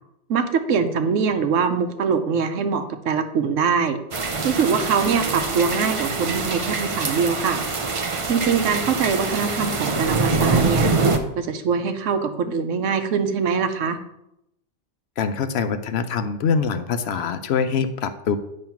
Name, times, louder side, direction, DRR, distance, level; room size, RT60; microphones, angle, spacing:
voice 1, 0.3-4.0 4.4-7.6 8.3-10.9 11.4-14.0, right 6 dB, 90° right, 8 dB, 1.1 m, -23 dB
sound 1, 4.1-11.2, right 4 dB, 40° right, 0.5 m, -24 dB
voice 2, 15.2-18.4, left 6 dB, 65° left, 9 dB, 0.8 m, -24 dB
9.0 x 3.2 x 5.7 m, 0.82 s
omnidirectional pair, 1.3 m